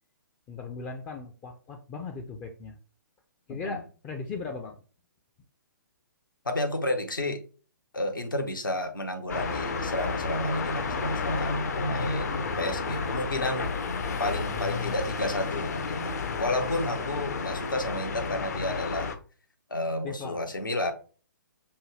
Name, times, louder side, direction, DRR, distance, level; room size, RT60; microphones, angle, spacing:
voice 1, 0.5-2.8 3.5-4.8 20.0-20.6, left 4 dB, 15° left, 3 dB, 0.4 m, -38 dB
voice 2, 6.4-7.4 7.9-13.7 14.2-19.1 19.7-20.9, left 1 dB, 75° left, 5 dB, 1.0 m, -31 dB
sound 1, 9.3-19.2, left 4 dB, 50° left, 0.6 m, -32 dB
5.4 x 2.2 x 3.1 m, 0.37 s
figure-of-eight pair, 130°, 11 cm